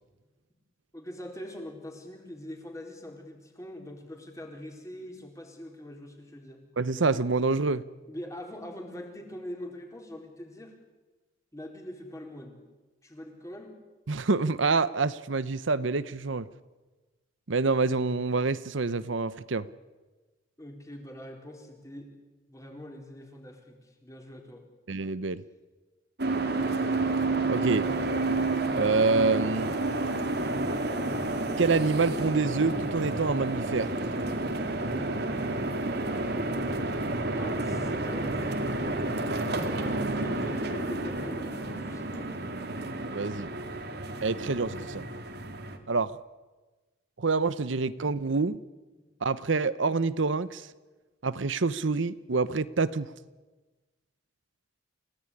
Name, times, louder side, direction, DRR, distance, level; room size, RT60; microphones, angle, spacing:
voice 1, 0.9-6.6 8.1-10.7 11.5-12.6 13.0-13.8 20.6-22.1 22.5-24.6 37.4-39.0 40.1-42.3, left 1 dB, 15° left, 3 dB, 4.2 m, -43 dB
voice 2, 6.8-7.8 14.1-16.5 17.5-19.7 24.9-25.4 27.5-27.9 28.7-29.7 31.6-33.9 43.1-43.5 44.2-45.1 45.9-46.2 47.2-48.6 49.2-50.7 51.2-53.1, right 4 dB, 70° right, 16 dB, 0.8 m, -27 dB
sound 1, 26.2-45.8, right 2 dB, 55° right, 2.5 m, -30 dB
29.0 x 17.5 x 10.0 m, 1.2 s
head